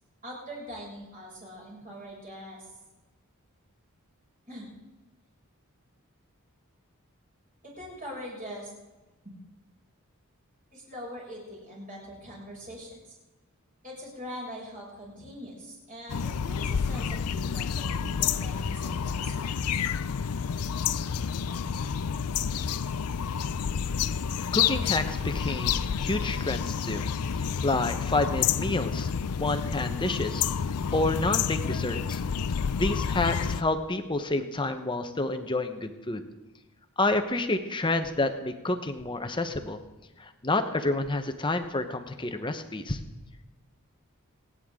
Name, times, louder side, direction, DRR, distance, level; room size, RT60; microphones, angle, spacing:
voice 1, 0.2-2.7 4.5-4.7 7.6-8.7 9.2-9.4 10.7-13.2 13.8-19.9, equal, 40° right, -4 dB, 6.5 m, -42 dB
sound 1, 16.1-33.6, left 7 dB, 85° left, 0.5 m, -29 dB
voice 2, 24.5-27.1 27.4-29.1 29.4-30.4 30.9-32.2 32.8-36.2 37.0-39.8 40.2-43.0, left 2 dB, 20° left, 8 dB, 1.0 m, -29 dB
28.5 x 10.0 x 3.8 m, 1.1 s
head